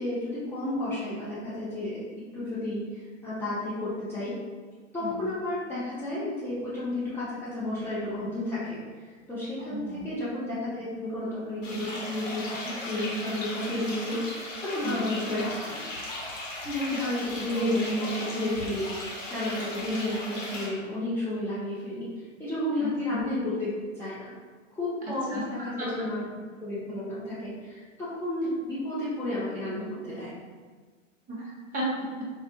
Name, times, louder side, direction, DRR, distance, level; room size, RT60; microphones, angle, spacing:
voice 1, 0.0-2.0 2.3-4.3 4.9-8.8 9.1-14.2 14.6-15.8 16.6-22.1 22.4-24.3 24.7-26.2 26.6-30.3, left 1 dB, 5° left, -13 dB, 0.6 m, -32 dB
voice 2, 9.7-10.0 14.8-15.1 16.9-17.0 22.8-23.2 25.0-25.5 25.8-26.1 31.3-32.3, right 2 dB, 20° right, -5 dB, 0.9 m, -34 dB
sound 1, 11.6-20.7, left 2 dB, 75° left, 1.1 m, -37 dB
4.1 x 2.1 x 2.7 m, 1.5 s
figure-of-eight pair, 100°, 39 cm